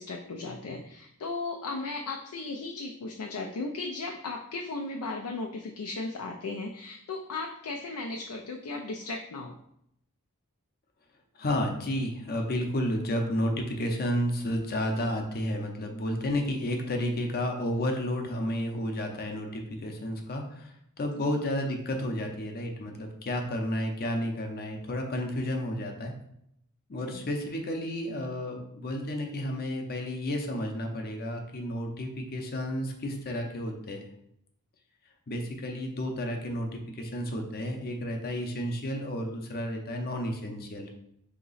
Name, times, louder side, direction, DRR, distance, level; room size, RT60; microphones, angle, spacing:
voice 1, 0.0-9.5 21.2-21.3 27.0-27.3, left 3 dB, 85° left, 2 dB, 0.4 m, -36 dB
voice 2, 11.4-26.1 26.9-34.0 35.3-40.9, left 1 dB, 45° left, 3 dB, 0.7 m, -31 dB
3.8 x 2.9 x 4.0 m, 0.76 s
head